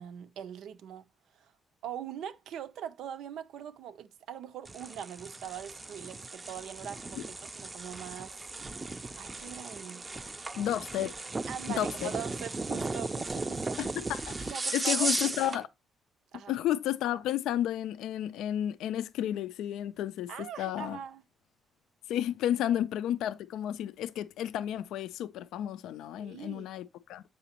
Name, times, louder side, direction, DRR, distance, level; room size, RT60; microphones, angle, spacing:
voice 1, 0.0-1.5 1.8-8.4 9.2-10.1 11.5-13.8 14.5-15.1 15.4-15.6 16.3-16.5 20.3-21.2 26.2-26.7, right 9 dB, 80° right, 0.5 m, -42 dB
sound 1, 4.6-15.6, right 3 dB, 25° right, 0.4 m, -36 dB
voice 2, 10.6-11.1 11.8-12.1 13.8-15.7 16.5-21.0 22.1-27.2, left 11 dB, 85° left, 0.3 m, -32 dB
6.9 x 5.0 x 2.8 m
cardioid pair, 90°, 0 cm